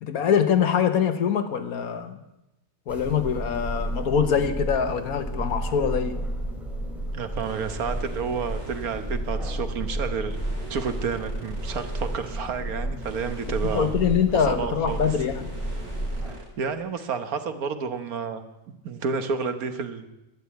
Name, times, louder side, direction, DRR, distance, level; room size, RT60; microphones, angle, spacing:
voice 1, 0.0-2.2 2.9-6.2 13.7-15.5, left 7 dB, 75° left, 1.5 m, -24 dB
sound 1, 2.9-16.3, right 1 dB, ahead, 3.1 m, -32 dB
voice 2, 7.1-10.4 10.7-13.9 14.5-15.0 16.3-20.1, right 5 dB, 75° right, 1.6 m, -30 dB
sound 2, 7.3-9.2 10.3-12.6 13.0-14.3 14.9-16.5, right 2 dB, 60° right, 4.2 m, -46 dB
11.5 x 10.5 x 8.3 m
omnidirectional pair, 1.6 m